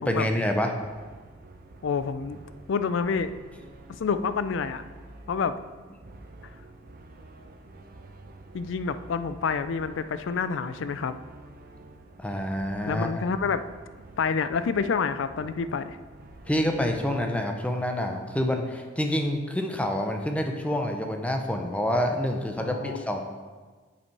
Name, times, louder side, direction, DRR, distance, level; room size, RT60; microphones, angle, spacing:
voice 1, 0.1-0.7 12.2-13.2 16.5-23.2, left 1 dB, 5° left, 4 dB, 0.6 m, -27 dB
sound 1, 0.8-17.1, right 2 dB, 50° right, 0.6 m, -48 dB
voice 2, 1.8-2.4 2.7-3.3 4.0-4.8 5.3-5.5 8.5-11.1 12.9-13.6 14.2-16.0 22.6-23.0, left 5 dB, 65° left, 12 dB, 0.4 m, -28 dB
6.9 x 5.9 x 4.6 m, 1.4 s
head